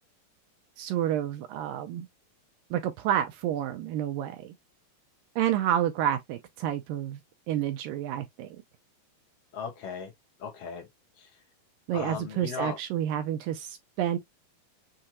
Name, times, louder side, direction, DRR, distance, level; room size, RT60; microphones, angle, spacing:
voice 1, 0.8-2.1 2.7-4.5 5.4-7.2 7.5-8.5 11.9-14.2, right 11 dB, 80° right, 2.1 m, -29 dB
voice 2, 9.5-10.1 10.4-10.9 11.2-11.3 11.9-12.8, left 6 dB, 70° left, 1.4 m, -37 dB
6.5 x 2.5 x 2.9 m
omnidirectional pair, 4.3 m